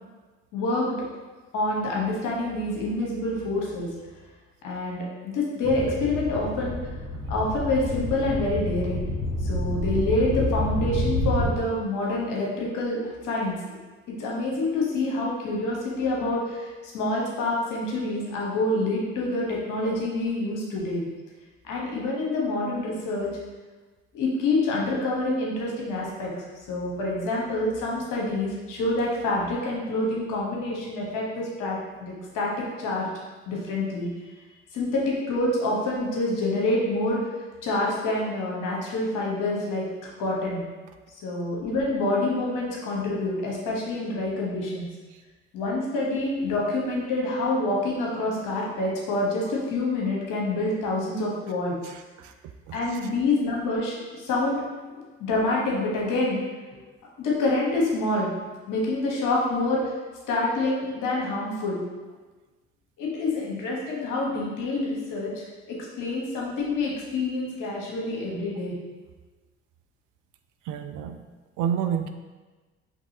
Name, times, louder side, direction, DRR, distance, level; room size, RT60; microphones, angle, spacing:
voice 1, 0.5-0.9 1.5-3.9 4.6-6.8 7.3-9.1 9.4-13.8 14.2-21.0 21.6-23.3 24.1-26.3 26.7-32.5 32.8-33.1 33.5-34.3 34.7-37.2 37.6-39.9 40.2-40.6 41.2-44.9 45.5-51.7 52.7-54.6 54.9-56.4 56.7-56.8 57.2-58.3 58.7-59.9 60.3-61.8 63.0-68.7, left 2 dB, 65° left, -3 dB, 1.2 m, -27 dB
sound 1, 5.6-11.5, left 1 dB, 35° right, 1.3 m, -28 dB
voice 2, 51.8-52.3 52.7-53.0 70.6-71.2 71.6-72.1, right 8 dB, 65° right, 7 dB, 0.5 m, -30 dB
5.3 x 3.1 x 2.8 m, 1.3 s
hypercardioid pair, 45°, 33 cm